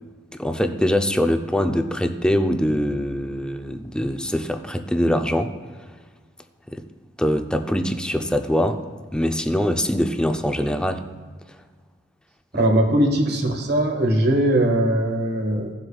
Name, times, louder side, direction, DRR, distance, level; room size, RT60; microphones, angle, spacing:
voice 1, 0.4-5.5 6.7-6.8 7.2-8.8 9.1-11.1, equal, 5° left, 6 dB, 0.5 m, -23 dB
voice 2, 12.5-15.7, right 1 dB, 60° right, 2 dB, 1.6 m, -20 dB
16.0 x 7.8 x 2.4 m, 1.5 s
head